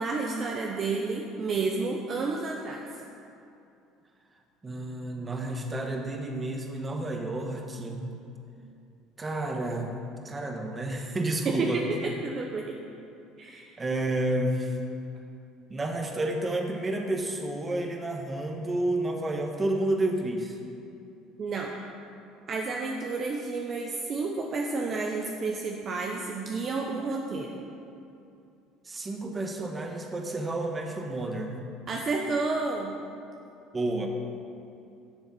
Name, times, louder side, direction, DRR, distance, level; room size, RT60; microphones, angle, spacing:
voice 1, 0.0-2.8 11.4-11.5 12.0-12.8 13.4-13.8 21.4-21.8 22.5-27.6 31.9-33.0, right 3 dB, 35° right, 1 dB, 0.8 m, -31 dB
voice 2, 4.6-8.1 9.2-10.0 10.2-11.9 13.8-14.8 15.7-20.6 27.0-27.1 28.8-31.6 33.7-34.1, right 1 dB, 20° right, 3 dB, 1.2 m, -30 dB
11.5 x 7.0 x 5.4 m, 2.6 s
cardioid pair, 135°, 0 cm